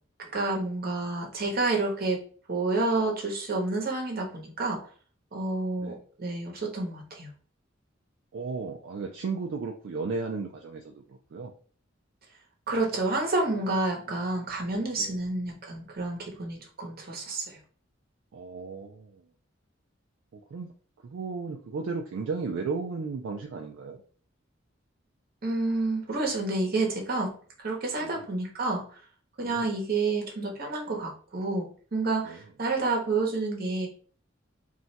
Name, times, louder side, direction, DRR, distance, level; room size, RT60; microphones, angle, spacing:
voice 1, 0.2-2.2 2.5-4.8 5.3-7.3 12.7-17.6 25.4-27.3 27.6-29.0 29.4-33.9, right 3 dB, 50° right, 0 dB, 0.9 m, -29 dB
voice 2, 8.3-11.5 15.0-15.2 18.3-19.2 20.3-20.7 21.0-24.0 28.0-28.3 29.4-29.7 32.2-32.4, right 4 dB, 70° right, 2 dB, 0.4 m, -35 dB
2.4 x 2.1 x 3.9 m, 0.43 s
head